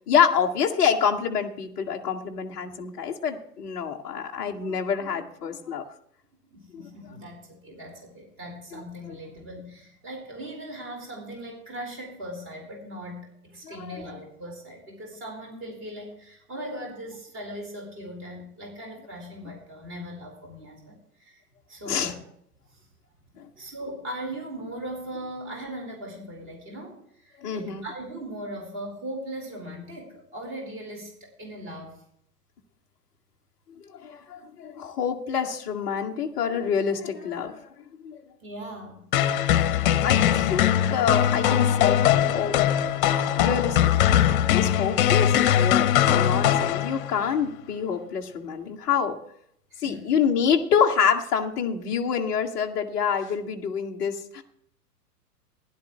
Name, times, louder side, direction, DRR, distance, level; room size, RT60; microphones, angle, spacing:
voice 1, 0.1-5.8 6.7-6.8 13.6-14.0 21.9-22.1 23.3-23.5 27.4-27.8 33.8-37.7 38.0-38.2 40.0-42.6 43.4-43.8 44.5-49.2 49.8-54.4, left 7 dB, 5° left, -4 dB, 0.4 m, -27 dB
voice 2, 6.5-21.4 21.7-22.2 22.7-22.8 23.5-32.0 38.4-39.0 49.7-50.1, right 1 dB, 35° right, 2 dB, 4.6 m, -39 dB
sound 1, 39.1-47.3, left 10 dB, 35° left, 0.7 m, -21 dB
16.0 x 11.0 x 3.1 m, 0.69 s
figure-of-eight pair, 110°, 48 cm